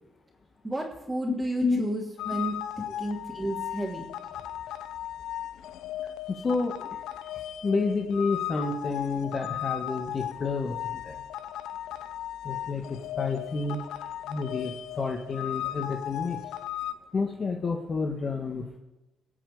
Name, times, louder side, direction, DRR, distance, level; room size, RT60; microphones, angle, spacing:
voice 1, 0.6-2.5 2.9-4.0, right 1 dB, 15° right, -5 dB, 3.4 m, -32 dB
voice 2, 1.3-1.8 2.8-2.9 6.3-6.9 7.6-11.2 12.4-13.8 14.3-16.4 17.1-18.8, left 4 dB, 40° left, 3 dB, 1.6 m, -30 dB
sound 1, 2.2-16.9, left 11 dB, 85° left, 0.7 m, -36 dB
24.5 x 8.3 x 5.0 m, 1.0 s
cardioid pair, 90°, 0 cm